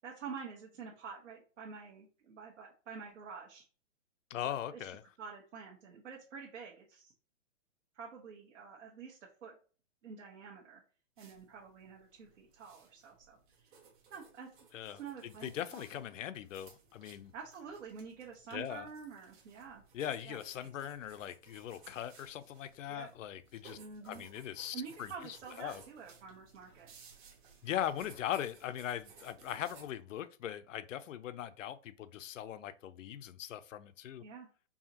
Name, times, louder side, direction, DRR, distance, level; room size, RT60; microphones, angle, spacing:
voice 1, 0.0-3.6 4.4-4.9 5.2-7.1 7.9-9.6 10.0-10.8 11.2-13.8 14.1-14.5 14.8-16.0 17.3-19.8 20.2-20.4 22.9-23.1 23.7-24.2 24.7-26.9 34.2-34.5, right 6 dB, 75° right, 1.3 m, -48 dB
voice 2, 4.3-5.0 14.7-17.3 18.5-18.9 19.9-23.8 24.0-25.8 27.6-34.2, left 11 dB, 80° left, 0.6 m, -40 dB
sound 1, 11.2-29.9, right 5 dB, 40° right, 1.3 m, -60 dB
4.8 x 2.7 x 2.8 m
hypercardioid pair, 170°, 38 cm